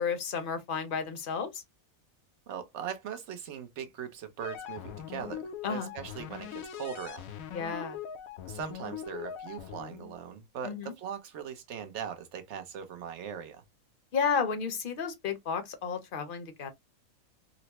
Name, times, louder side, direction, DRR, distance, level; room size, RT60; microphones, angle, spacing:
voice 1, 0.0-1.6 5.6-5.9 7.5-8.0 10.6-10.9 14.1-16.7, left 6 dB, 45° left, 0.8 m, -32 dB
voice 2, 2.5-7.2 8.4-13.6, right 8 dB, 60° right, 1.0 m, -40 dB
sound 1, 4.4-10.2, left 8 dB, 85° left, 1.1 m, -41 dB
4.0 x 2.1 x 2.8 m
omnidirectional pair, 1.4 m